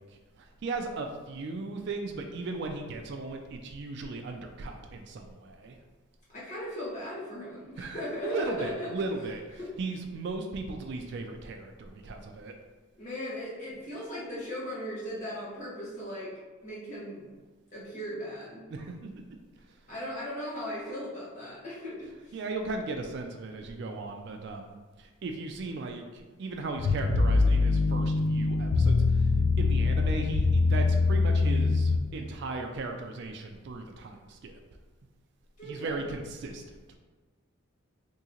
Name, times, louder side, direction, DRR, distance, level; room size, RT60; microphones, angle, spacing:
voice 1, 0.0-5.8 7.8-12.5 18.7-19.1 22.3-29.3 29.6-34.6 35.6-37.0, right 3 dB, 55° right, 4 dB, 0.3 m, -37 dB
voice 2, 6.3-8.9 9.6-9.7 13.0-16.3 16.6-17.2 17.7-18.8 19.9-22.4 35.6-36.1, equal, 35° left, -8 dB, 1.1 m, -38 dB
sound 1, 26.8-32.0, left 3 dB, 70° left, 0.4 m, -24 dB
3.7 x 2.8 x 2.9 m, 1.3 s
head